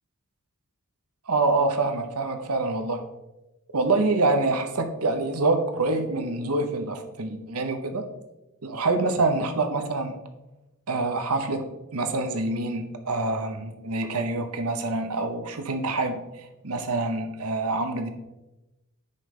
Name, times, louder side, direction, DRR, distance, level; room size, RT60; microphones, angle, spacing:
voice 1, 1.3-3.0 3.7-8.0 8.6-10.2 10.9-16.2 16.6-18.1, right 3 dB, 80° right, 7 dB, 0.9 m, -26 dB
9.6 x 5.3 x 3.2 m, 0.98 s
head